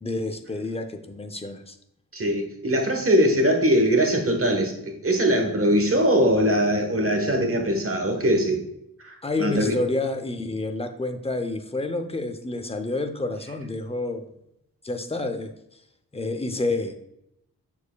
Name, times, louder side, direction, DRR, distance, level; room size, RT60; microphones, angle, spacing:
voice 1, 0.0-1.8 9.2-14.3 14.8-15.5 16.1-16.9, left 2 dB, 15° left, 7 dB, 0.6 m, -29 dB
voice 2, 2.1-8.6 9.0-9.8, equal, 35° right, 3 dB, 1.2 m, -21 dB
7.1 x 6.6 x 2.2 m, 0.80 s
wide cardioid pair, 110°, 38 cm